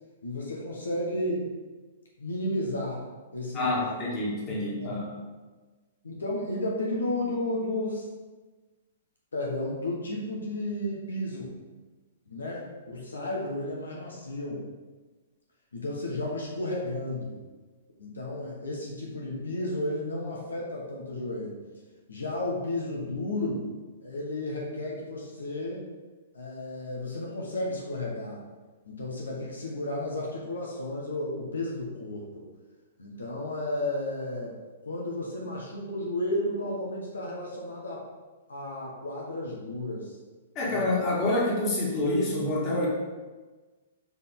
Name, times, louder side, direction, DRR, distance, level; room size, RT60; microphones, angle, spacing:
voice 1, 0.2-1.5 2.2-3.0 3.3-3.9 4.8-5.0 6.0-8.1 9.3-11.5 12.3-14.6 15.7-17.4 18.0-21.5 22.1-23.7 24.0-25.8 26.3-28.4 28.8-32.4 33.0-34.5 34.8-38.1 38.5-40.2 40.6-40.8, left 1 dB, 80° left, -2 dB, 1.4 m, -33 dB
voice 2, 3.5-5.1 40.6-42.9, left 1 dB, 30° left, -4 dB, 2.1 m, -27 dB
6.8 x 4.8 x 3.8 m, 1.3 s
hypercardioid pair, 120°, 0 cm